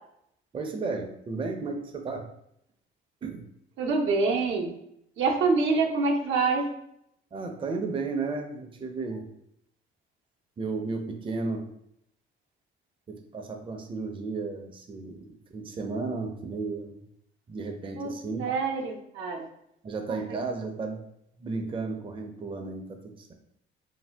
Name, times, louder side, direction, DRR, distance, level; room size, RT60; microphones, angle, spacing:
voice 1, 0.5-2.3 3.2-3.5 7.3-9.3 10.6-11.7 13.1-17.1 17.5-18.5 19.8-21.0 21.4-23.3, right 4 dB, 25° right, 4 dB, 0.4 m, -34 dB
voice 2, 3.8-4.7 5.2-6.7 18.0-18.1 18.4-19.5, right 4 dB, 85° right, 0 dB, 0.6 m, -25 dB
2.6 x 2.2 x 3.3 m, 0.76 s
cardioid pair, 90°, 20 cm